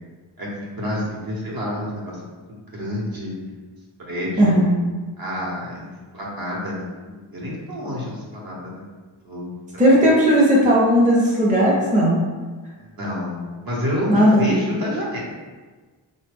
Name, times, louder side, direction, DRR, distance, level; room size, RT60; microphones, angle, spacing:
voice 1, 0.4-2.3 2.7-3.4 4.1-4.7 5.2-8.8 9.2-9.8 12.8-15.2, left 1 dB, 55° right, -5 dB, 0.9 m, -29 dB
voice 2, 4.4-4.7 9.8-12.2 14.1-14.4, equal, 15° right, -5 dB, 0.6 m, -16 dB
3.1 x 2.1 x 3.3 m, 1.4 s
wide cardioid pair, 125°, 44 cm